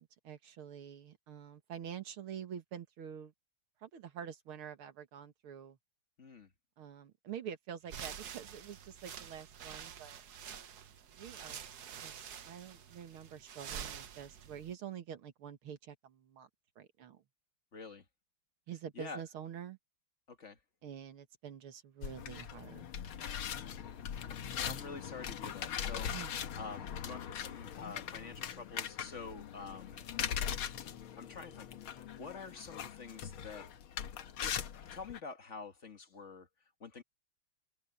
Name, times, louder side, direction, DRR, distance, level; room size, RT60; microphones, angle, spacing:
voice 1, 0.0-3.3 3.8-5.8 6.8-10.2 11.1-11.6 12.0-16.5 16.8-17.2 18.7-19.8 20.8-22.9 26.1-26.4, right 8 dB, 85° right, 2.4 m, -47 dB
voice 2, 6.2-6.5 17.7-18.0 19.0-19.2 20.3-20.6 23.7-23.9 24.6-30.0 30.5-30.6 31.2-33.7 34.4-36.5 36.8-37.0, left 4 dB, 35° left, 1.9 m, -48 dB
sound 1, 7.8-14.7, right 8 dB, 55° right, 1.4 m, -47 dB
sound 2, 22.0-35.2, left 8 dB, 80° left, 2.0 m, -41 dB
omnidirectional pair, 2.3 m